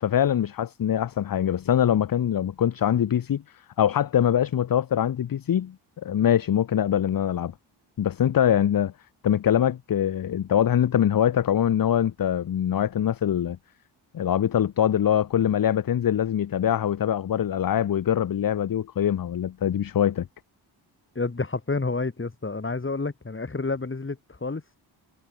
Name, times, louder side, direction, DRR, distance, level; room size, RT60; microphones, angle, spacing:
voice 1, 0.0-3.4 3.8-5.7 6.0-7.5 8.0-8.9 9.2-13.6 14.1-20.3, left 10 dB, 45° left, 0.8 m, -23 dB
voice 2, 21.1-24.6, left 3 dB, 25° left, 2.8 m, -29 dB
cardioid pair, 60°, 48 cm